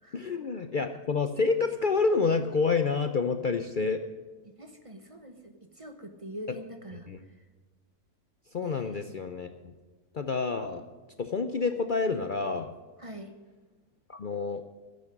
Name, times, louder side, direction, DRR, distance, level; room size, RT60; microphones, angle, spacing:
voice 1, 0.1-4.0 7.1-7.2 8.5-9.5 10.1-10.8 11.2-12.7 14.1-14.6, left 4 dB, 55° left, 7 dB, 0.5 m, -28 dB
voice 2, 4.4-7.1 8.6-9.0 13.0-13.3, right 1 dB, 25° right, 6 dB, 0.9 m, -44 dB
10.5 x 8.4 x 10.0 m, 1.3 s
omnidirectional pair, 1.6 m